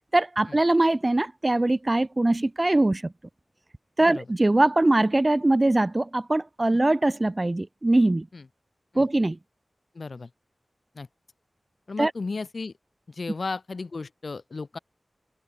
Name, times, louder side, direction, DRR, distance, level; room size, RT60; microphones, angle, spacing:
voice 1, 0.1-3.1 4.0-8.3 8.9-9.4 12.0-12.1, right 2 dB, 30° right, 1.2 m, -22 dB
voice 2, 9.9-10.3 10.9-11.1 11.9-12.7 13.1-14.8, left 3 dB, 65° left, 4.9 m, -34 dB
wide cardioid pair, 55°, 0 cm